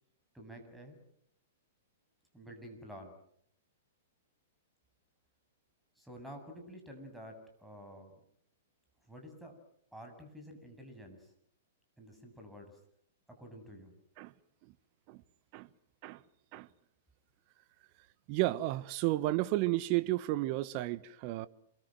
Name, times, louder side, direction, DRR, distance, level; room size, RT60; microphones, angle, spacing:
voice 1, 0.3-1.0 2.3-3.2 6.0-8.1 9.1-9.5 9.9-11.3 12.0-12.8 13.4-13.9, equal, 5° right, 7.8 m, -50 dB
voice 2, 18.3-21.5, right 17 dB, 45° right, 1.3 m, -32 dB
28.0 x 23.0 x 7.9 m
figure-of-eight pair, 110°, 0 cm